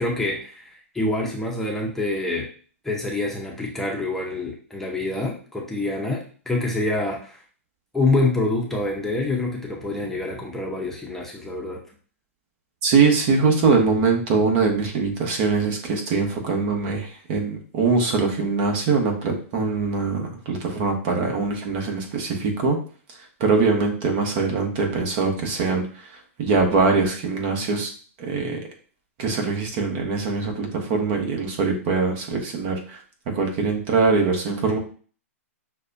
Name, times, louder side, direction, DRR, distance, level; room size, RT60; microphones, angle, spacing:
voice 1, 0.0-2.5 2.8-7.4 7.9-11.8, left 2 dB, 5° left, -2 dB, 0.8 m, -26 dB
voice 2, 12.8-22.8 23.4-26.1 26.4-27.9 28.2-28.6 29.2-33.0 33.3-34.8, right 4 dB, 45° right, 2 dB, 1.2 m, -22 dB
6.3 x 2.3 x 2.7 m, 0.41 s
hypercardioid pair, 120°, 8 cm